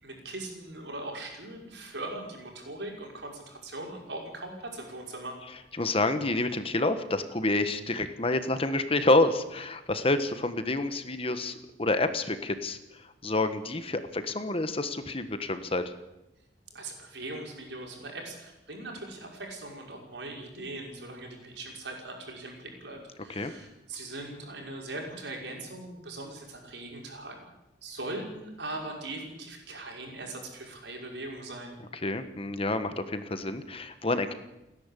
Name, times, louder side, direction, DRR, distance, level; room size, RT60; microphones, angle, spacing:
voice 1, 0.0-5.4 16.7-27.3 27.8-31.7, right 2 dB, 90° right, 0 dB, 5.7 m, -40 dB
voice 2, 5.8-12.8 13.2-15.9 23.3-23.5 32.0-34.3, left 2 dB, 35° left, 10 dB, 1.4 m, -28 dB
29.5 x 10.5 x 8.4 m, 0.95 s
head